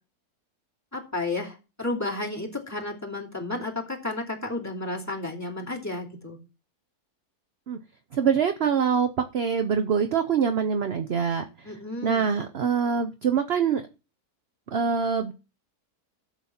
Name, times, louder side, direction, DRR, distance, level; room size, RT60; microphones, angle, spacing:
voice 1, 0.9-6.4 11.6-12.3, left 2 dB, 10° left, -3 dB, 2.8 m, -32 dB
voice 2, 8.1-11.7 12.0-13.8 14.7-15.3, right 6 dB, 50° right, 8 dB, 0.8 m, -24 dB
12.5 x 7.1 x 4.4 m, 0.32 s
omnidirectional pair, 1.7 m